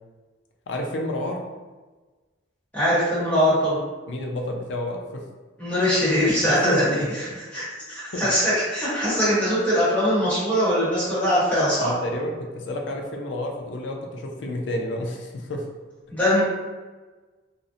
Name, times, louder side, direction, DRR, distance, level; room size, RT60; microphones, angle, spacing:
voice 1, 0.7-1.4 4.1-5.2 6.4-7.1 8.1-8.3 11.8-15.6, left 1 dB, 70° left, 2 dB, 0.4 m, -30 dB
voice 2, 2.7-3.8 5.6-6.9 7.1-7.2 7.5-11.9 16.1-16.4, equal, 10° left, -10 dB, 1.0 m, -22 dB
2.5 x 2.0 x 2.6 m, 1.3 s
head